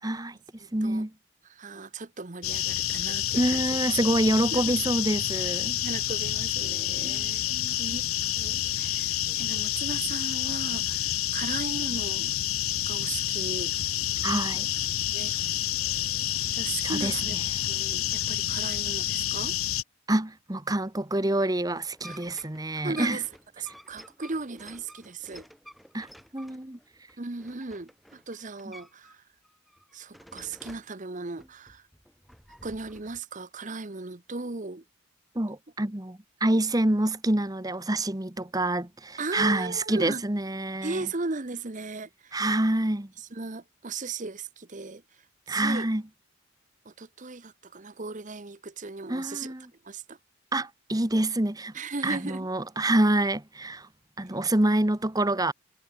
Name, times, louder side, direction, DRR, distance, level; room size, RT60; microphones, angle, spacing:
voice 1, 0.0-0.4 0.7-1.1 3.4-5.8 7.0-7.7 14.2-14.7 16.8-17.1 20.1-23.2 25.9-26.1 26.3-26.8 35.3-41.0 42.3-43.1 45.5-46.0 49.1-49.6 50.5-51.7 52.0-53.9 54.2-55.5, right 1 dB, 15° right, 1.1 m, -27 dB
voice 2, 0.6-1.1 1.4-3.8 4.5-4.8 5.3-7.4 7.8-8.0 8.4-12.4 12.9-13.7 15.1-15.6 16.5-17.4 17.7-19.6 22.1-22.2 22.7-23.3 23.6-25.5 27.2-29.2 29.9-31.9 32.6-34.8 39.2-40.2 40.8-42.4 43.2-45.9 46.8-49.5 49.8-50.2 51.7-52.5 54.2-54.4, right 3 dB, 35° right, 0.9 m, -37 dB
sound 1, 2.4-19.8, left 12 dB, 80° left, 1.1 m, -29 dB
sound 2, 21.9-29.2 29.4-30.9 31.4-33.2, equal, ahead, 4.1 m, -50 dB
head